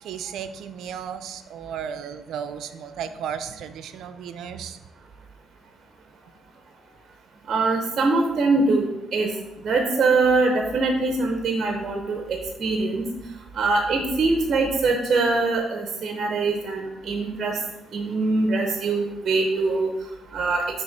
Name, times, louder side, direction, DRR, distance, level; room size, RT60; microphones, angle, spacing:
voice 1, 0.0-4.8, right 8 dB, 75° right, 10 dB, 0.4 m, -34 dB
voice 2, 7.5-9.3 9.6-13.1 13.5-17.6 17.9-19.9 20.3-20.6, right 3 dB, 45° right, 2 dB, 0.7 m, -23 dB
7.1 x 3.4 x 4.0 m, 1.0 s
cardioid pair, 95°, 0 cm